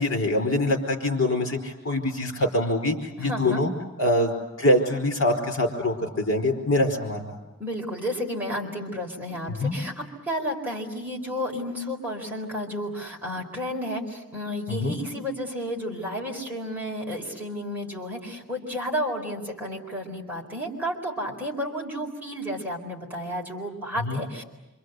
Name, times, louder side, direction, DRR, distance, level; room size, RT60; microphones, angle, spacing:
voice 1, 0.0-3.7 4.0-4.3 4.6-7.4 9.6-9.7 14.7-15.0 24.0-24.2, left 1 dB, 60° left, 5 dB, 4.9 m, -24 dB
voice 2, 3.2-3.6 7.6-24.4, equal, 10° right, -2 dB, 4.4 m, -32 dB
27.0 x 26.5 x 8.2 m, 1.1 s
head